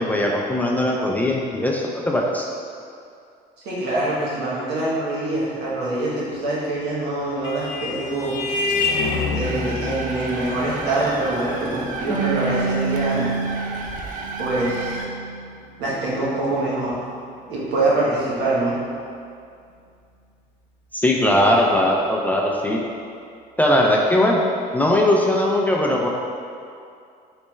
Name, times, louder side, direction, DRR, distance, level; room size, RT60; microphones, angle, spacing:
voice 1, 0.0-2.5 20.9-22.8 23.6-24.4 24.7-26.1, left 1 dB, 10° left, -2 dB, 0.3 m, -19 dB
voice 2, 3.6-8.4 9.3-13.3 14.4-15.0 15.8-17.0 17.5-18.8, right 2 dB, 75° right, -7 dB, 1.1 m, -24 dB
Vehicle horn car horn honking, 6.8-15.8, left 3 dB, 80° left, 0.4 m, -29 dB
sound 1, 9.4-15.1, right 3 dB, 50° right, 0.4 m, -33 dB
Harp, 12.1-15.5 15.8-16.9, right 4 dB, 10° right, 1.0 m, -28 dB
3.2 x 3.1 x 3.1 m, 2.4 s
cardioid pair, 110°, 17 cm